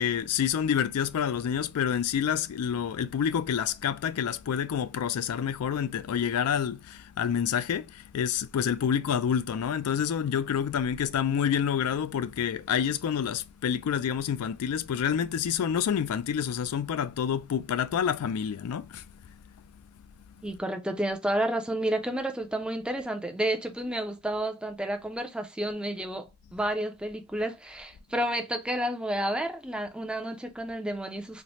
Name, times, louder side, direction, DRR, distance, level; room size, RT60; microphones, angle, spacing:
voice 1, 0.0-19.0, left 8 dB, 80° left, 0.3 m, -28 dB
voice 2, 20.4-31.4, right 1 dB, 5° right, 0.4 m, -31 dB
4.1 x 2.0 x 3.0 m
head